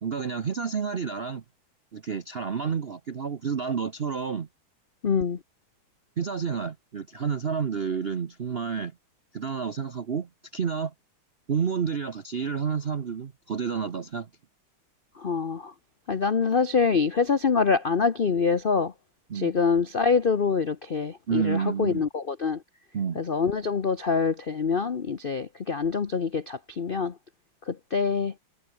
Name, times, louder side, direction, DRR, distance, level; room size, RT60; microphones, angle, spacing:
voice 1, 0.0-1.4 1.9-4.5 6.2-8.9 9.3-10.9 11.5-14.3 19.3-19.5 21.3-22.0 22.9-23.2, right 6 dB, 60° right, 0.6 m, -30 dB
voice 2, 5.0-5.4 15.2-15.7 16.1-18.9 19.3-22.6 23.1-27.1 27.7-28.3, left 5 dB, 70° left, 0.5 m, -25 dB
omnidirectional pair, 2.3 m